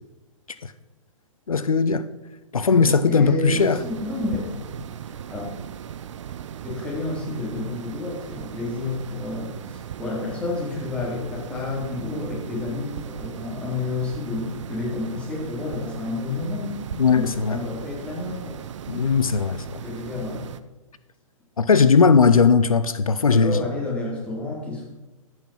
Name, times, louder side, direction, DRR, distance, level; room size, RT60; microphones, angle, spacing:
voice 1, 1.5-2.1 2.5-3.8 16.9-17.6 18.9-19.8 21.6-23.6, left 5 dB, 90° left, 14 dB, 0.6 m, -18 dB
voice 2, 2.6-4.7 5.0-5.5 6.6-16.7 17.0-18.5 18.9-19.0 19.8-20.5 23.3-24.9, left 3 dB, 5° left, -4 dB, 3.9 m, -30 dB
sound 1, 3.5-20.6, right 9 dB, 60° right, 0.7 m, -38 dB
13.5 x 6.4 x 5.6 m, 1.1 s
figure-of-eight pair, 115°, 17 cm